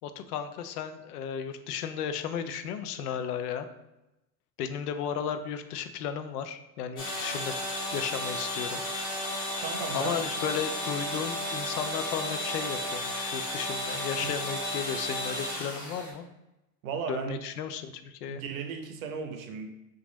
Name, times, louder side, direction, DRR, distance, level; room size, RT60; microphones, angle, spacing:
voice 1, 0.0-3.7 4.6-7.5 7.9-8.8 9.9-16.3 17.1-18.4, left 8 dB, 70° left, 9 dB, 0.5 m, -34 dB
sound 1, 7.0-16.1, left 1 dB, 10° left, 0.3 m, -33 dB
voice 2, 9.6-10.2 14.2-14.3 16.8-17.4 18.3-19.7, right 6 dB, 55° right, 6 dB, 0.7 m, -35 dB
2.9 x 2.5 x 3.9 m, 0.94 s
hypercardioid pair, 110°, 48 cm